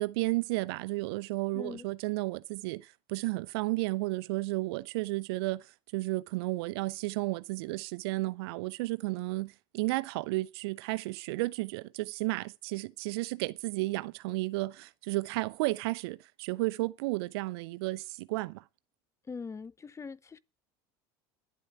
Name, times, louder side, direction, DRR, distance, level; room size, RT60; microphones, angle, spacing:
voice 1, 0.0-18.6, right 21 dB, 80° right, 0.8 m, -33 dB
voice 2, 1.5-1.8 19.3-20.4, left 5 dB, 20° left, 0.8 m, -42 dB
11.5 x 8.6 x 8.7 m
supercardioid pair, 90°, 13 cm